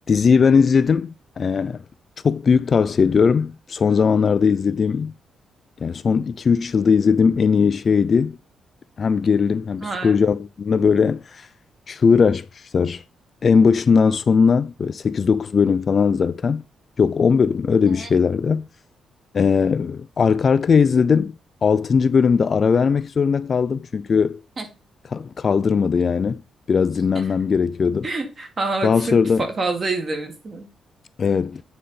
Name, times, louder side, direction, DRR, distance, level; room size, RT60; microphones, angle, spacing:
voice 1, 0.1-1.8 2.2-5.1 5.8-8.4 9.0-11.5 11.9-13.0 13.4-16.6 17.0-18.7 19.3-21.4 21.6-24.4 25.1-26.4 26.7-28.1 28.8-29.4 31.2-31.6, left 5 dB, 40° left, 0.3 m, -19 dB
voice 2, 9.8-10.2 17.9-18.1 24.6-24.7 27.1-27.2 28.0-30.7, right 3 dB, 30° right, 1.8 m, -27 dB
8.5 x 4.0 x 5.6 m
cardioid pair, 150°, 0 cm